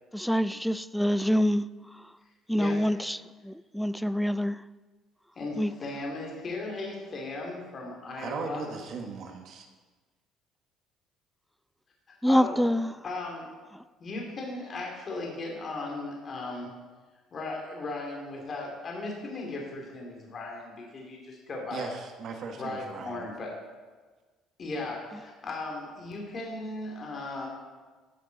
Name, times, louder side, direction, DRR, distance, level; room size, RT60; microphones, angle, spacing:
voice 1, 0.1-1.7 2.0-2.1 2.5-3.2 3.4-4.6 5.6-5.7 12.2-12.9, equal, ahead, 0.3 m, -26 dB
voice 2, 5.4-8.7 12.3-12.6 13.0-13.5 14.0-16.7 17.3-21.9 22.6-23.5 24.6-27.5, left 2 dB, 35° left, 2.7 m, -37 dB
voice 3, 8.1-9.7 21.7-23.3, right 4 dB, 55° right, 1.4 m, -38 dB
15.0 x 9.2 x 4.0 m
cardioid pair, 120°, 0 cm